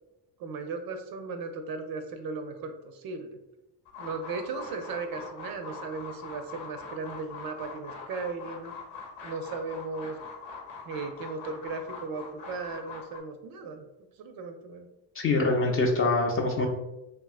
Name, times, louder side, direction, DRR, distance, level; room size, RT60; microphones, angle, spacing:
voice 1, 0.4-3.3 4.0-8.7 9.2-10.2 10.8-13.8 14.2-14.9, right 4 dB, 50° right, 7 dB, 0.5 m, -36 dB
sound 1, 3.9-13.2, left 5 dB, 65° left, 0.8 m, -43 dB
voice 2, 15.2-16.7, left 3 dB, 30° left, 1 dB, 0.4 m, -24 dB
2.8 x 2.4 x 2.4 m, 0.96 s
hypercardioid pair, 60°, 49 cm